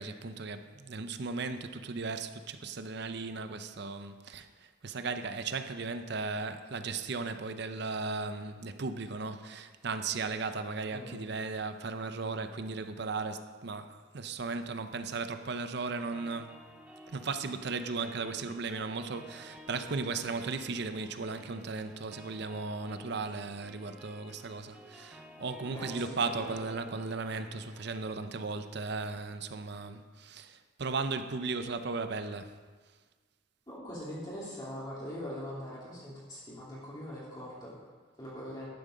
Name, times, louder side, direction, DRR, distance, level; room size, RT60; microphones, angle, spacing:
voice 1, 0.0-4.5 4.8-16.6 17.1-32.5, right 4 dB, 60° right, 10 dB, 0.7 m, -36 dB
sound 1, 16.1-28.1, right 1 dB, 5° right, 1.0 m, -53 dB
voice 2, 25.7-26.5 33.7-37.7 38.2-38.7, equal, 20° left, -8 dB, 2.7 m, -42 dB
11.5 x 9.0 x 5.1 m, 1.5 s
head